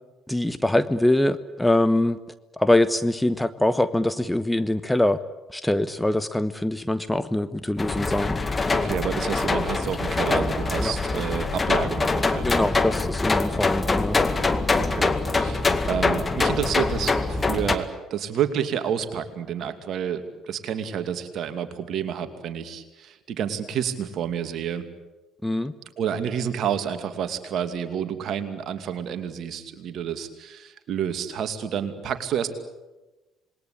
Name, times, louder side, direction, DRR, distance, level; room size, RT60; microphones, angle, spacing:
voice 1, 0.3-2.2 2.6-5.2 5.5-8.4 10.8-10.9 12.4-14.2 25.4-25.7, left 1 dB, 10° left, 13 dB, 1.1 m, -23 dB
sound 1, 7.8-17.8, left 3 dB, 25° left, 2.1 m, -24 dB
voice 2, 8.8-12.7 14.7-24.9 26.0-32.5, right 8 dB, 55° right, 9 dB, 2.5 m, -29 dB
27.0 x 21.0 x 8.6 m, 1.1 s
hypercardioid pair, 50°, 0 cm